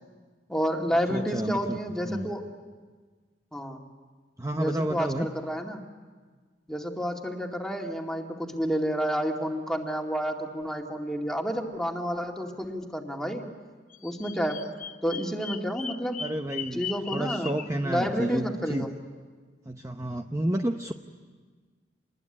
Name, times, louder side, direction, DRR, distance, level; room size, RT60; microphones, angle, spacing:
voice 1, 0.5-2.4 3.5-3.8 4.5-5.8 6.7-13.5 14.0-14.6 15.0-16.2 16.7-17.5 17.8-18.9, equal, 5° left, 1 dB, 2.3 m, -30 dB
voice 2, 1.1-1.8 2.0-2.3 4.4-5.3 16.2-16.9 17.1-18.9 19.7-20.9, right 1 dB, 15° right, 4 dB, 0.8 m, -30 dB
Bird vocalization bird call bird song, 13.9-17.7, left 7 dB, 45° left, 1.0 m, -38 dB
27.0 x 20.5 x 9.8 m, 1.5 s
head